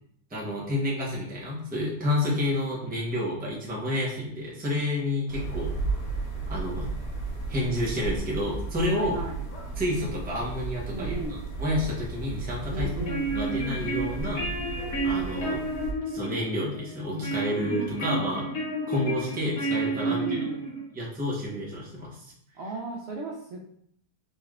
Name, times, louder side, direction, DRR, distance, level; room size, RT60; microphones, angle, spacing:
voice 1, 0.3-5.7 6.5-6.9 7.5-9.2 9.8-12.9 13.3-14.4 15.0-15.6 16.1-18.4 18.9-20.4 20.9-22.1, left 1 dB, 10° right, -5 dB, 0.5 m, -29 dB
sound 1, 5.3-15.9, right 3 dB, 85° left, 1.5 m, -34 dB
voice 2, 8.9-9.5 10.9-11.4 12.7-13.4 20.0-20.7 22.6-23.6, right 2 dB, 70° right, -2 dB, 0.6 m, -36 dB
sound 2, 12.8-20.8, right 2 dB, 65° left, 1.5 m, -31 dB
4.0 x 3.2 x 2.4 m, 0.68 s
omnidirectional pair, 1.8 m